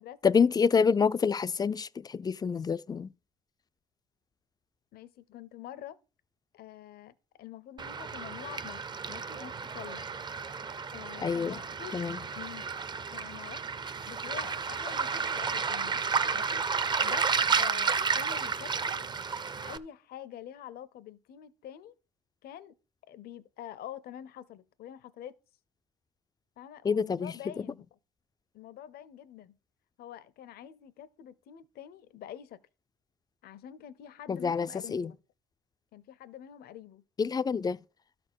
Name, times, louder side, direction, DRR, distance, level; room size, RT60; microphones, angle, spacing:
voice 1, 0.2-3.1 11.2-11.6 11.9-12.2 26.8-27.3 34.3-35.1 37.2-37.8, left 6 dB, 25° left, 0.4 m, -27 dB
voice 2, 4.9-6.0 6.5-8.8 9.1-10.0 10.9-12.0 12.4-12.7 13.1-13.7 14.1-16.0 16.3-19.1 19.6-21.9 22.4-22.7 23.1-25.3 26.6-27.9 28.5-29.5 30.0-32.6 33.4-35.2 35.9-37.0, left 10 dB, 65° left, 0.7 m, -46 dB
Waves surf, 7.8-19.8, right 5 dB, 25° right, 0.6 m, -32 dB
12.5 x 4.3 x 6.2 m
cardioid pair, 110°, 17 cm